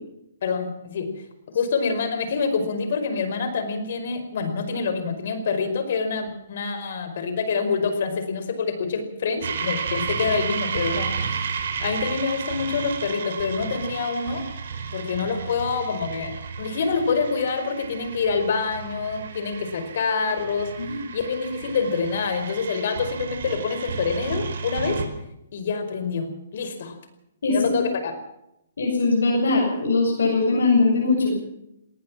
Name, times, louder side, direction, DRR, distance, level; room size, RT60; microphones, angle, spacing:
voice 1, 0.4-1.1 1.5-11.5 11.8-14.4 14.9-20.7 21.1-25.0 25.5-26.9 27.5-28.1, left 5 dB, 55° left, 9 dB, 5.1 m, -26 dB
sound 1, 9.4-25.0, right 6 dB, 60° right, 5.2 m, -32 dB
voice 2, 27.4-27.8 28.8-31.3, left 3 dB, 85° left, 0 dB, 7.6 m, -21 dB
19.5 x 19.0 x 7.4 m, 0.82 s
hypercardioid pair, 160°, 0 cm